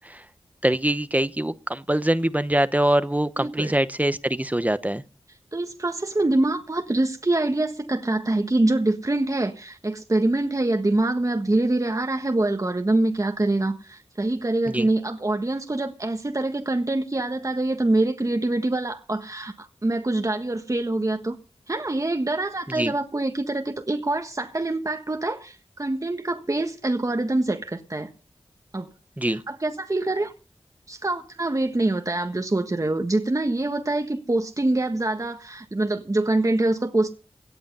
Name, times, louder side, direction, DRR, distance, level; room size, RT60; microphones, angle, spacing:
voice 1, 0.6-5.0 14.7-14.9 22.8-22.9 29.2-29.4, right 1 dB, 15° right, 0.9 m, -23 dB
voice 2, 3.4-3.7 5.5-21.4 21.7-28.1 28.7-28.9 29.3-30.3 30.9-37.1, right 2 dB, 35° right, 1.5 m, -25 dB
17.5 x 10.5 x 5.5 m
wide cardioid pair, 55°, 10 cm